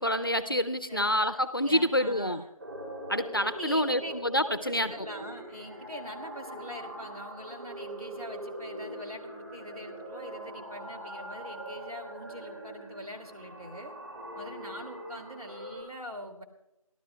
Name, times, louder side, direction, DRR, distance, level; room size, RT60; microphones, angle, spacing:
voice 1, 0.0-2.4 3.1-5.1, left 1 dB, 35° left, 12 dB, 0.5 m, -27 dB
voice 2, 1.6-2.5 3.5-4.1 4.5-13.9 14.3-16.4, equal, 75° right, 4 dB, 2.6 m, -43 dB
sound 1, 2.6-15.8, right 1 dB, 35° right, 2.9 m, -42 dB
27.0 x 12.5 x 2.3 m, 0.92 s
figure-of-eight pair, 170°, 19 cm